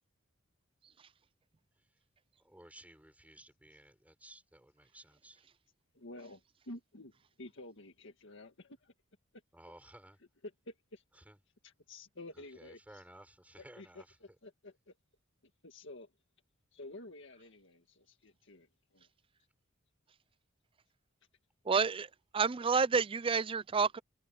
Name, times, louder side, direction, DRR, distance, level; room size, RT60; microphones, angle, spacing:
voice 1, 2.4-5.5 9.5-10.2 11.1-11.4 12.4-14.2, right 1 dB, 5° right, 6.1 m, -56 dB
voice 2, 5.9-7.1 7.4-8.9 10.7-11.0 11.6-13.0 13.8-15.0 15.6-16.1 16.7-19.1, left 2 dB, 65° left, 1.9 m, -51 dB
voice 3, 21.7-22.1 22.3-24.0, right 5 dB, 25° right, 0.4 m, -29 dB
head